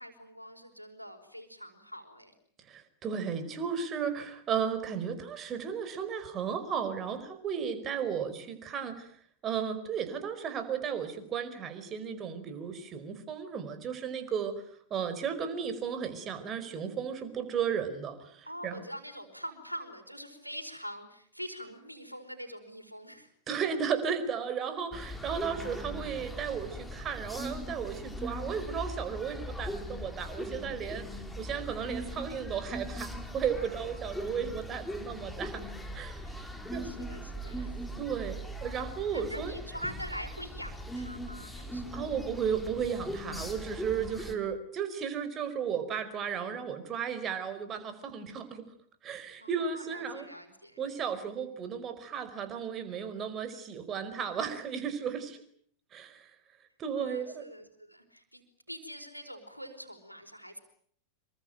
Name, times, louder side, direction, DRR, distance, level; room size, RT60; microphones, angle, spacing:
voice 1, 0.0-2.3 18.4-23.3 33.6-34.0 36.2-37.9 39.1-42.0 49.4-50.8 56.9-60.6, equal, 90° right, 5 dB, 4.8 m, -44 dB
voice 2, 2.7-9.1 9.4-14.5 14.9-18.8 23.5-31.0 31.4-35.6 35.9-36.9 38.0-39.5 41.9-48.6 49.0-50.2 50.8-55.4 55.9-56.3 56.8-57.5, right 7 dB, 30° right, 10 dB, 4.8 m, -34 dB
sound 1, 24.9-44.3, equal, 5° left, 3.8 m, -40 dB
26.5 x 23.5 x 9.1 m, 0.63 s
figure-of-eight pair, 90°, 0 cm